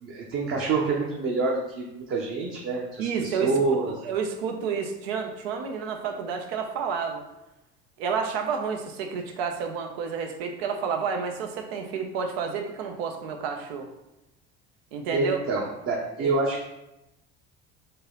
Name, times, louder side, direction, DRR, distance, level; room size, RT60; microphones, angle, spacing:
voice 1, 0.0-4.0 15.1-16.6, right 3 dB, 45° right, -2 dB, 0.9 m, -27 dB
voice 2, 3.0-7.2 8.0-13.9 14.9-15.4 16.2-16.3, right 6 dB, 80° right, 4 dB, 0.8 m, -30 dB
3.9 x 2.8 x 3.8 m, 0.91 s
hypercardioid pair, 80°, 30 cm